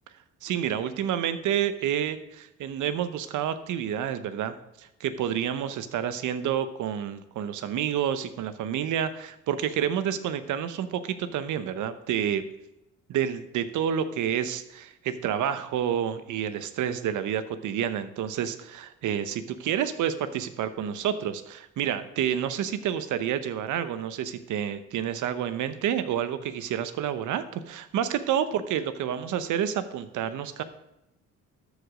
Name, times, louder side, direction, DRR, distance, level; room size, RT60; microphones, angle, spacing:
voice 1, 0.4-12.5 13.1-30.6, right 9 dB, 80° right, 12 dB, 0.9 m, -29 dB
13.0 x 4.9 x 5.1 m, 0.88 s
cardioid pair, 90°, 30 cm